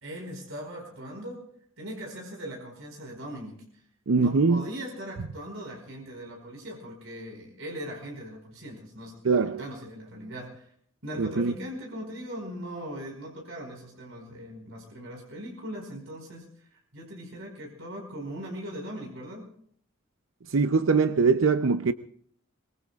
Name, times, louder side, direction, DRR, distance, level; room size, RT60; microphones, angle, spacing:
voice 1, 0.0-1.4 1.8-3.6 4.1-10.7 11.0-19.5, equal, 90° right, 4.7 m, -40 dB
voice 2, 4.1-4.6 9.2-9.6 11.2-11.5 20.5-21.9, right 4 dB, 75° right, 0.6 m, -22 dB
24.0 x 22.5 x 2.4 m
head